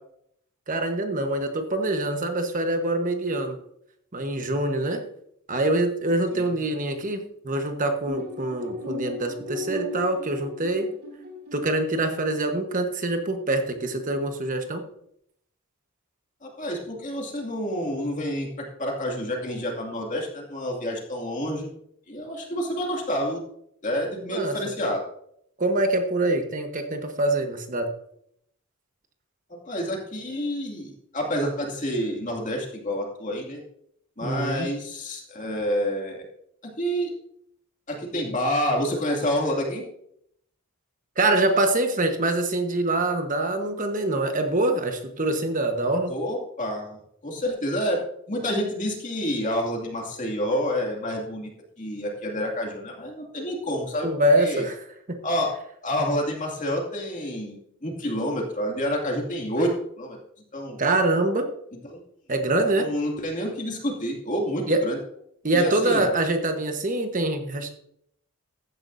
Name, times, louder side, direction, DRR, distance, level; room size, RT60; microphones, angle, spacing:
voice 1, 0.7-3.6 4.1-5.0 5.5-10.9 11.5-14.8 24.3-24.6 25.6-27.9 34.2-34.7 41.2-46.1 54.0-54.7 55.1-55.2 60.8-61.5 62.3-62.9 64.7-64.8 65.4-67.7, right 2 dB, 35° right, 5 dB, 1.2 m, -24 dB
sound 1, 8.1-11.7, left 2 dB, 70° right, 4.0 m, -36 dB
voice 2, 16.4-18.5 18.8-21.7 22.1-23.4 23.8-25.0 29.5-33.6 34.2-36.3 36.6-37.1 37.9-39.8 46.1-47.0 47.2-51.5 51.8-54.1 54.4-54.7 55.2-55.5 55.8-60.2 60.5-60.8 61.9-62.0 62.8-65.0 65.5-66.0, equal, 35° left, 0 dB, 2.4 m, -28 dB
15.0 x 10.5 x 2.7 m, 0.71 s
head